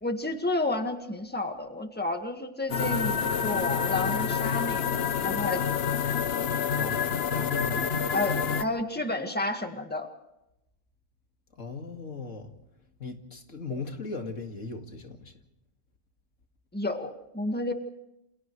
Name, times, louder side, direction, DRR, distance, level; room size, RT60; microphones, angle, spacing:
voice 1, 0.0-5.6 8.1-10.1 16.7-17.7, left 2 dB, 10° left, 1.8 m, -31 dB
sound 1, 2.7-8.6, left 7 dB, 55° left, 1.1 m, -28 dB
voice 2, 6.7-7.1 7.3-7.9 11.6-12.5 13.0-15.3, left 4 dB, 90° left, 2.5 m, -37 dB
28.5 x 27.5 x 3.3 m
omnidirectional pair, 1.3 m